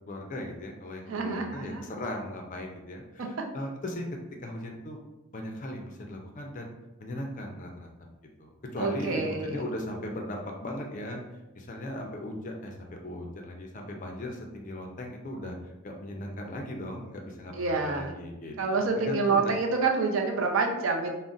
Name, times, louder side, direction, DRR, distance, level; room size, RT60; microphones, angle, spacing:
voice 1, 0.1-4.1 4.4-5.0 5.3-6.7 7.0-7.9 8.4-11.2 11.5-19.5, left 1 dB, 35° left, 2 dB, 0.4 m, -38 dB
voice 2, 1.1-1.8 8.8-9.7 17.5-18.2 18.6-21.1, right 4 dB, 70° right, 2 dB, 0.4 m, -27 dB
2.4 x 2.0 x 3.7 m, 1.0 s
head